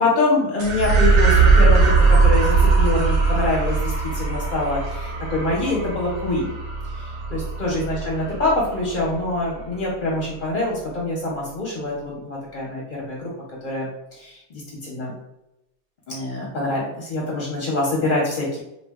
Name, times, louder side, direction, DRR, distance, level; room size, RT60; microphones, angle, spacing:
voice 1, 0.0-6.6 7.0-7.1 7.3-15.1 16.1-18.6, left 2 dB, 45° left, -4 dB, 0.7 m, -25 dB
sound 1, 0.6-9.2, right 4 dB, 85° right, 1.1 m, -19 dB
2.4 x 2.2 x 3.4 m, 0.89 s
omnidirectional pair, 1.2 m